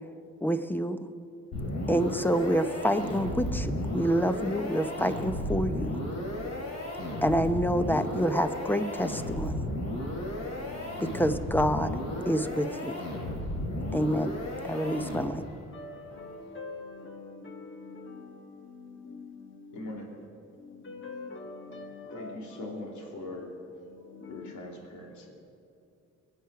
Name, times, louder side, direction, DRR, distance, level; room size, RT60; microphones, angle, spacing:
voice 1, 0.4-1.0 1.9-6.0 7.2-9.6 11.0-11.9 12.3-13.0 13.9-14.4 14.6-15.4, equal, 5° left, 10 dB, 0.7 m, -27 dB
sound 1, 1.5-15.6, left 1 dB, 60° left, 3.9 m, -34 dB
voice 2, 10.0-11.1 14.7-14.9 15.7-20.0 20.6-22.4 22.6-22.8 23.9-24.5, left 3 dB, 40° left, 4 dB, 1.6 m, -45 dB
voice 3, 19.7-20.1 22.1-23.5 24.3-25.3, left 2 dB, 75° left, 0 dB, 3.0 m, -41 dB
21.5 x 8.1 x 5.8 m, 2.5 s
cardioid pair, 90°, 30 cm